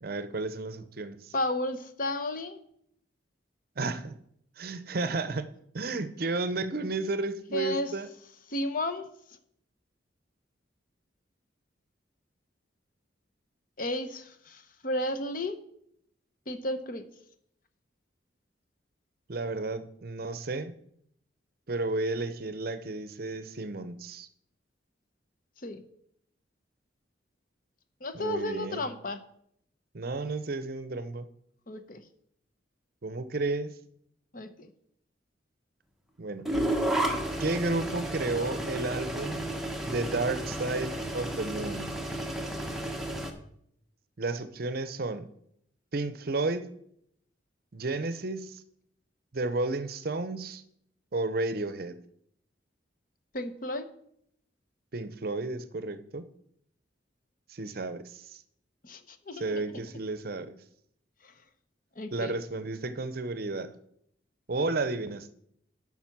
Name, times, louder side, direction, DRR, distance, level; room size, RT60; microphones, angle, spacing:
voice 1, 0.0-1.3 3.8-4.2 4.6-5.5 5.7-8.1 19.3-20.7 21.7-24.3 28.1-28.9 29.9-31.3 33.0-33.7 36.2-36.5 37.4-39.5 39.8-41.9 44.2-45.3 45.9-46.7 47.7-48.6 49.3-50.6 51.1-52.0 54.9-56.3 57.5-58.4 59.3-60.6 62.1-63.7 64.5-65.3, right 3 dB, 50° right, 12 dB, 0.6 m, -32 dB
voice 2, 1.3-2.6 7.5-7.9 8.5-9.1 13.8-15.6 16.5-17.0 25.6-25.8 28.0-29.2 31.7-32.0 34.3-34.7 53.3-53.9 58.8-59.8 61.2-61.3 62.0-62.3, left 1 dB, 45° left, 10 dB, 0.8 m, -33 dB
sound 1, 36.5-43.3, right 1 dB, ahead, 0.9 m, -32 dB
8.9 x 5.9 x 5.9 m, 0.71 s
head